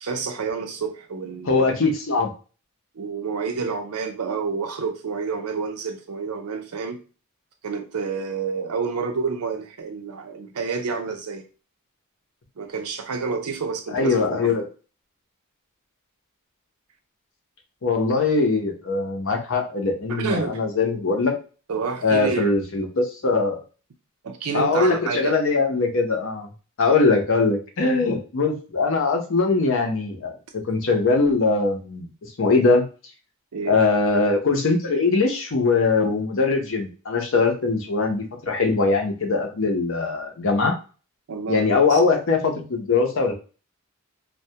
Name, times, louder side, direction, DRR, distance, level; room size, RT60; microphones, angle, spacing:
voice 1, 0.0-1.7 3.0-7.0 7.6-11.5 12.6-14.5 20.1-20.6 21.7-22.5 24.2-25.4 33.5-33.8 41.3-42.0, right 5 dB, 90° right, 0.5 m, -29 dB
voice 2, 1.5-2.3 13.9-14.7 17.8-21.4 22.0-23.6 24.5-26.5 26.8-32.8 33.7-40.7 41.5-43.3, left 3 dB, 60° left, 0.6 m, -21 dB
2.2 x 2.1 x 2.7 m
head